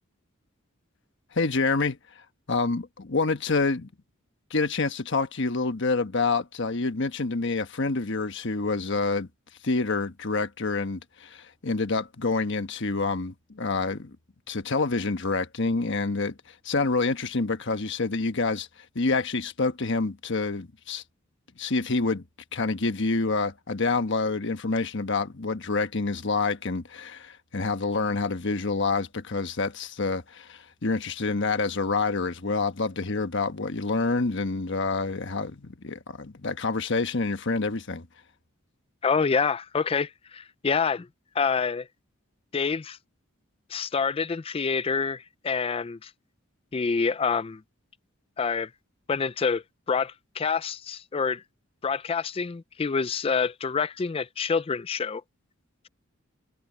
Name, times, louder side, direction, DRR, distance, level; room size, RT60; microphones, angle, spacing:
voice 1, 1.3-2.0 2.5-3.9 4.5-9.3 9.6-14.2 14.5-16.4 16.6-18.7 18.9-21.0 21.6-22.2 22.5-38.1, left 3 dB, 60° left, 1.2 m, -27 dB
voice 2, 39.0-41.1 41.4-41.9 42.5-43.0 43.7-46.1 46.7-47.6 48.4-48.7 49.1-51.4 51.8-55.2, left 5 dB, 25° left, 0.4 m, -27 dB
head